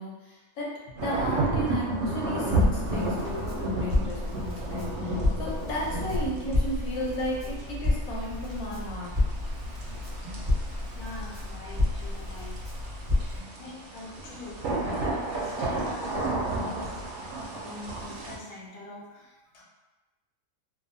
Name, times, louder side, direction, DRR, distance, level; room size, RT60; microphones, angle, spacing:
voice 1, 0.0-9.1 10.2-10.4 13.4-13.5, equal, 85° left, -4 dB, 1.2 m, -35 dB
sound 1, 1.0-18.3, right 2 dB, 65° right, 0.8 m, -32 dB
Crackle, 2.5-13.4, left 2 dB, 15° right, 0.9 m, -30 dB
voice 2, 10.9-12.6 13.2-17.0 17.6-19.6, left 3 dB, 60° left, -3 dB, 0.8 m, -43 dB
2.6 x 2.3 x 2.6 m, 1.1 s
omnidirectional pair, 1.5 m